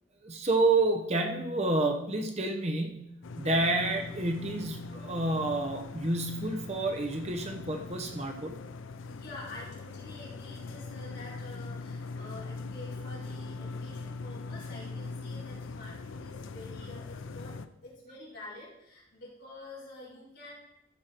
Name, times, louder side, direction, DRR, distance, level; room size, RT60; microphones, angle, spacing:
voice 1, 0.2-8.6, right 2 dB, 30° right, 3 dB, 0.8 m, -29 dB
sound 1, 3.2-17.7, left 3 dB, 70° left, 0.5 m, -41 dB
voice 2, 9.0-20.5, left 2 dB, 55° left, -7 dB, 4.3 m, -48 dB
14.0 x 6.4 x 4.5 m, 0.85 s
head